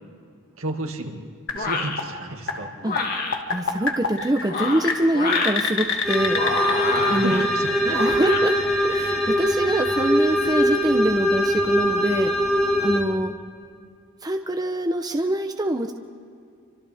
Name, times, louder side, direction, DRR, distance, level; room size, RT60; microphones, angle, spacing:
voice 1, 0.6-1.2 1.6-2.7 6.9-8.0 13.0-13.3, right 1 dB, 70° right, 2 dB, 2.2 m, -32 dB
sound 1, 1.5-11.3, left 4 dB, 60° left, 1.7 m, -31 dB
sound 2, 1.5-2.0 2.8-3.4 4.4-5.6 6.3-7.4 7.9-8.4, left 3 dB, 40° left, 1.8 m, -27 dB
voice 2, 3.5-6.4 7.1-7.5 7.8-8.6 8.8-12.3 12.8-13.3 14.2-15.9, right 1 dB, 20° right, 4 dB, 0.8 m, -24 dB
sound 3, 6.0-13.0, equal, ahead, 1.9 m, -22 dB
29.5 x 25.5 x 3.6 m, 2.4 s
head